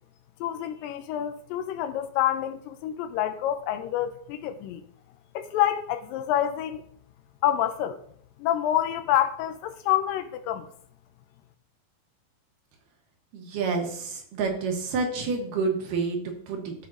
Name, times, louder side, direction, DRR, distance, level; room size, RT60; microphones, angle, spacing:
voice 1, 0.4-4.8 5.4-6.8 7.4-8.0 8.4-10.7, left 11 dB, 80° left, 2.2 m, -27 dB
voice 2, 13.3-16.7, right 4 dB, 70° right, 2.6 m, -29 dB
13.5 x 5.1 x 2.6 m
omnidirectional pair, 4.1 m